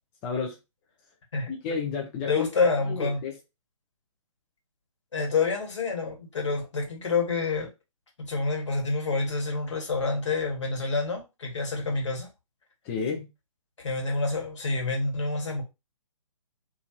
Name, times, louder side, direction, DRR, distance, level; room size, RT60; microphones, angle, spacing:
voice 1, 0.2-0.6 1.5-2.5 2.8-3.3 12.8-13.3, left 5 dB, 10° left, 0.3 m, -31 dB
voice 2, 2.3-3.2 5.1-7.7 8.2-12.3 13.8-15.6, left 4 dB, 60° left, 1.3 m, -28 dB
2.4 x 2.4 x 2.8 m
figure-of-eight pair, 135°, 17 cm